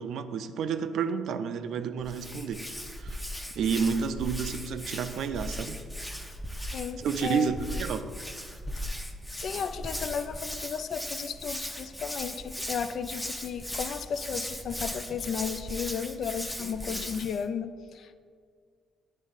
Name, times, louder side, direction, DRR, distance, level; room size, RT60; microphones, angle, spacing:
voice 1, 0.0-2.7 2.9-3.2 3.6-5.8 7.0-8.1, right 6 dB, 75° right, 10 dB, 0.4 m, -30 dB
Hands, 2.0-17.4, equal, 10° left, 0.7 m, -38 dB
voice 2, 6.7-7.6 9.4-18.2, left 7 dB, 65° left, 11 dB, 0.3 m, -34 dB
9.6 x 3.6 x 4.0 m, 2.1 s
cardioid pair, 90°, 0 cm